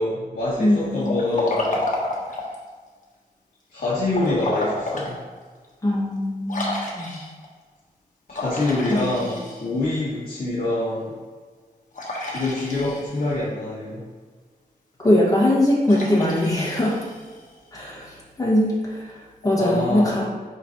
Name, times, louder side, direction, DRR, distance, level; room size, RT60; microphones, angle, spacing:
voice 1, 0.0-1.8 3.7-5.2 8.3-11.1 12.3-14.0 19.6-20.1, left 2 dB, 75° left, -8 dB, 1.8 m, -25 dB
voice 2, 0.6-1.2 5.8-7.2 8.9-9.3 15.0-17.0 17.7-20.3, left 1 dB, 25° left, -4 dB, 1.8 m, -21 dB
Liquid, 1.0-2.6 4.1-5.2 5.6-5.7 6.5-7.5 8.3-9.9 11.9-13.3 15.8-17.5, left 2 dB, 55° left, 1.4 m, -30 dB
10.5 x 3.5 x 3.0 m, 1.5 s
wide cardioid pair, 110°, 16 cm